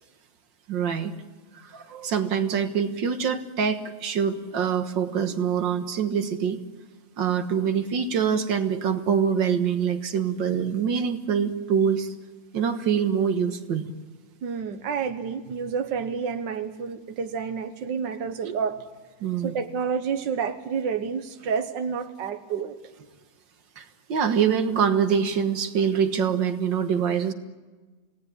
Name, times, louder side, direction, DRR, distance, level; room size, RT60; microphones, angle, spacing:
voice 1, 0.7-1.1 1.5-6.6 7.2-12.1 12.5-13.9 19.2-19.5 23.8-27.3, right 7 dB, 50° right, 8 dB, 1.6 m, -25 dB
voice 2, 14.4-18.9 19.4-22.8, right 6 dB, 65° right, 8 dB, 1.1 m, -29 dB
28.5 x 18.0 x 9.6 m, 1.3 s
omnidirectional pair, 3.4 m